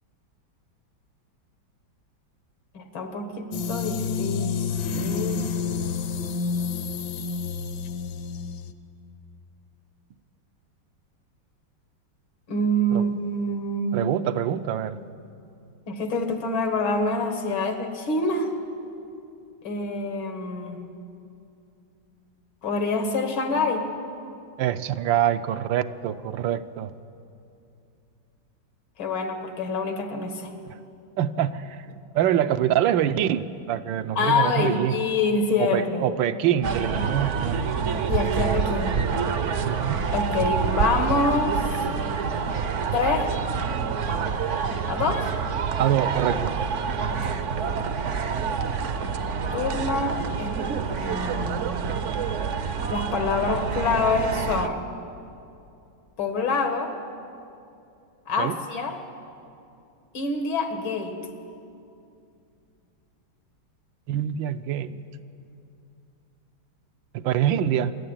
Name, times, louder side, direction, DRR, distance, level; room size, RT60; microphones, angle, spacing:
voice 1, 2.7-5.4 12.5-14.1 15.9-18.5 19.6-20.8 22.6-23.9 29.0-30.5 34.2-36.1 38.1-38.9 40.1-41.8 42.9-43.3 44.9-45.3 47.1-47.4 49.2-50.6 50.9-51.6 52.9-54.8 56.2-56.9 58.3-59.0 60.1-61.2, left 3 dB, 85° left, 6 dB, 2.5 m, -26 dB
sound 1, 3.5-8.7, left 5 dB, 65° left, 1.4 m, -29 dB
voice 2, 13.9-15.0 24.6-26.9 30.7-30.8 31.2-31.8 32.1-35.0 35.6-37.6 39.6-40.1 45.8-46.6 58.4-58.6 64.1-65.0 67.1-67.9, right 10 dB, 75° right, 11 dB, 1.3 m, -25 dB
sound 2, 36.6-54.7, right 6 dB, 55° right, 0.8 m, -27 dB
26.5 x 11.5 x 8.9 m, 2.6 s
omnidirectional pair, 2.2 m